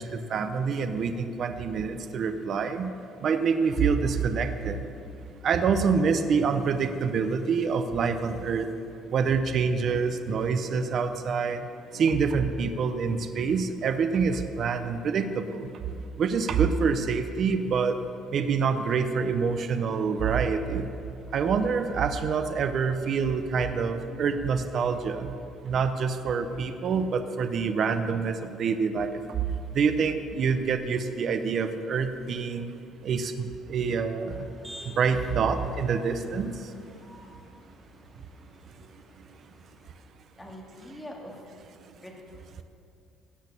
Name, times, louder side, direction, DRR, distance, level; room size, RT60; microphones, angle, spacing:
voice 1, 0.0-2.9 3.2-4.8 5.4-8.7 9.1-11.7 11.9-15.7 16.2-18.0 18.3-20.9 21.3-25.3 25.6-29.2 29.7-32.7 33.0-34.5 34.8-36.6, right 5 dB, 40° right, 8 dB, 0.7 m, -26 dB
Motor vehicle (road), 34.3-39.9, equal, 10° right, 2.3 m, -50 dB
voice 2, 40.4-41.4 41.7-42.1, left 1 dB, 10° left, -2 dB, 2.2 m, -43 dB
17.0 x 6.4 x 8.4 m, 2.6 s
cardioid pair, 165°, 0 cm